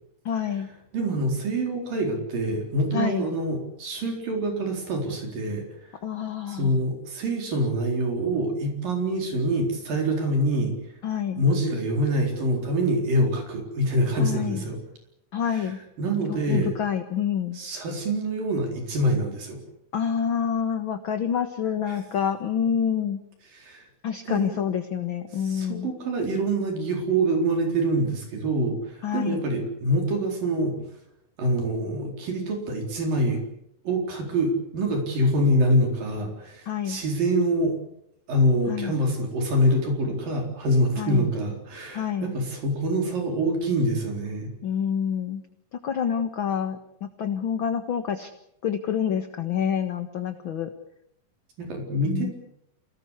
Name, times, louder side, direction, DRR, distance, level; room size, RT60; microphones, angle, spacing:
voice 1, 0.3-0.7 2.9-3.3 6.0-6.7 11.0-11.4 14.2-14.6 15.3-15.8 16.5-17.6 19.9-23.2 24.0-25.9 29.0-29.4 36.7-37.0 38.7-38.9 41.0-41.3 41.9-42.3 44.6-45.4 45.8-48.3 48.6-50.7 52.1-52.3, left 8 dB, 50° left, 8 dB, 1.8 m, -27 dB
voice 2, 0.9-6.0 6.5-10.7 11.4-14.8 15.4-16.7 17.5-19.6 21.9-22.0 23.5-23.9 24.3-24.6 25.3-30.7 31.4-33.4 33.8-37.8 38.3-44.5 51.6-52.3, right 1 dB, 80° right, 3 dB, 5.9 m, -25 dB
29.0 x 19.0 x 8.3 m, 0.77 s
omnidirectional pair, 3.9 m